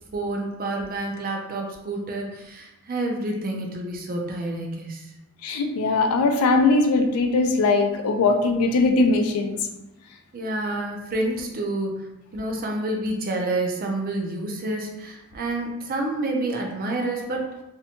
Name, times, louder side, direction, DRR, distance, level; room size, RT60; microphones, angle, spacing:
voice 1, 0.1-5.1 10.3-17.6, right 2 dB, 40° right, 1 dB, 0.4 m, -29 dB
voice 2, 5.4-9.6, left 3 dB, 85° left, 5 dB, 0.4 m, -20 dB
2.6 x 2.1 x 2.8 m, 0.91 s
head